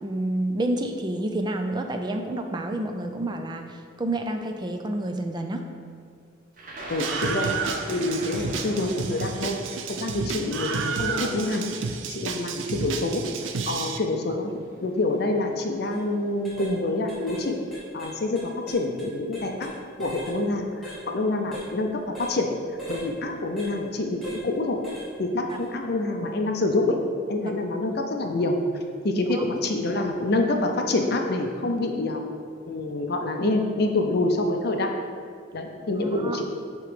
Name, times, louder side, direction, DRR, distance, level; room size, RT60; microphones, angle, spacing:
voice 1, 0.0-5.7 27.4-27.5 29.1-29.5 29.9-30.1 35.9-36.4, right 1 dB, 20° right, 5 dB, 0.4 m, -29 dB
Thunder, 6.6-12.6 13.5-13.6 14.7-15.0 15.3-15.8, right 2 dB, 45° right, 0.8 m, -41 dB
voice 2, 6.9-7.5 7.9-9.6 9.9-11.6 12.1-13.2 13.6-14.5 14.8-17.6 17.9-19.7 20.0-22.5 22.9-24.8 25.2-27.0 27.3-28.6 29.0-32.2 32.6-34.9 35.5-36.4, left 2 dB, 55° left, 3 dB, 0.5 m, -26 dB
Screaming, 7.0-14.0, right 5 dB, 80° right, 0.5 m, -31 dB
sound 1, 15.8-16.0 16.4-16.7 17.1-17.5 17.7-19.7 20.0-20.4 20.8-21.0 21.5-21.7 22.2-22.4 22.8-23.1 23.6-23.7 24.2-24.4 24.8-25.1 25.5-25.7, right 1 dB, ahead, 1.3 m, -39 dB
8.0 x 3.0 x 5.0 m, 2.2 s
head